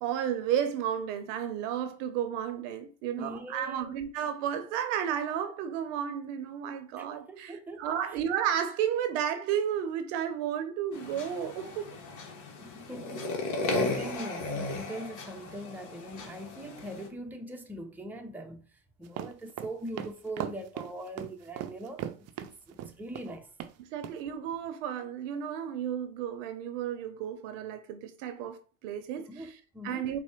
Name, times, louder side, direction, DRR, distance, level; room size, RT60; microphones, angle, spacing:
voice 1, 0.0-12.0 23.8-29.5 29.8-30.2, right 9 dB, 80° right, 0.7 m, -32 dB
voice 2, 3.2-4.0 7.0-7.9 12.6-22.1 22.4-23.5 29.3-30.1, right 1 dB, 5° right, 0.6 m, -42 dB
sound 1, 10.9-17.1, left 2 dB, 55° left, 1.2 m, -35 dB
sound 2, 19.1-23.3 23.6-23.7 24.0-24.2, right 10 dB, 45° right, 0.5 m, -38 dB
4.2 x 2.2 x 4.5 m
supercardioid pair, 100°, 37 cm